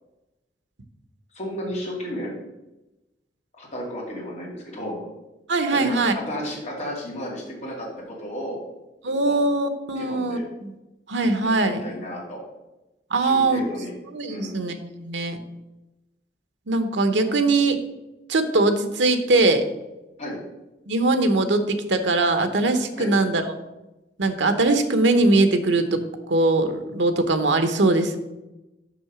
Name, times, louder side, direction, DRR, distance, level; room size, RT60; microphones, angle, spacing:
voice 1, 1.3-2.3 3.6-5.1 5.7-8.6 9.2-9.4 9.9-10.4 11.4-12.4 13.2-13.9 14.3-14.6 20.2-20.4 23.0-23.1, equal, 40° left, -3 dB, 2.4 m, -33 dB
voice 2, 5.5-6.1 9.0-10.7 11.1-11.8 13.1-13.7 14.1-15.4 16.7-17.8 18.3-19.6 20.9-23.6 24.2-26.0 26.3-28.2, right 2 dB, 90° right, 9 dB, 0.9 m, -21 dB
6.1 x 5.6 x 6.0 m, 0.99 s
head